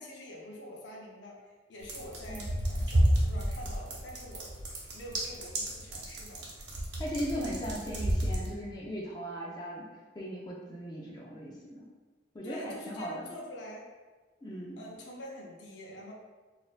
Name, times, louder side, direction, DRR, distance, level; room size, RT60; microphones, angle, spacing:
voice 1, 0.0-4.5 4.9-6.5 12.4-13.9 14.8-16.1, left 1 dB, 70° left, -2 dB, 0.7 m, -46 dB
sound 1, 1.8-8.5, right 1 dB, 65° right, 0.8 m, -31 dB
voice 2, 7.0-9.8 10.2-11.8 12.3-13.3 14.4-14.8, equal, 20° left, -4 dB, 0.5 m, -38 dB
4.2 x 2.5 x 2.4 m, 1.3 s
head